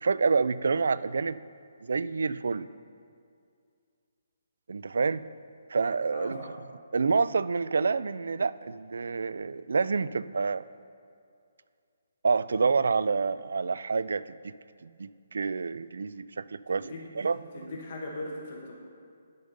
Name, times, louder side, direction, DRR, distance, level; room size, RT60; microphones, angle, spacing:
voice 1, 0.0-1.4 1.8-2.7 4.7-5.2 5.7-6.4 6.9-10.6 12.2-14.5 14.8-17.7, right 4 dB, 80° right, 17 dB, 0.3 m, -28 dB
voice 2, 6.1-6.5 16.7-17.0 17.5-18.8, left 2 dB, 35° left, -1 dB, 1.3 m, -39 dB
10.5 x 5.2 x 6.5 m, 2.3 s
hypercardioid pair, 175°, 0 cm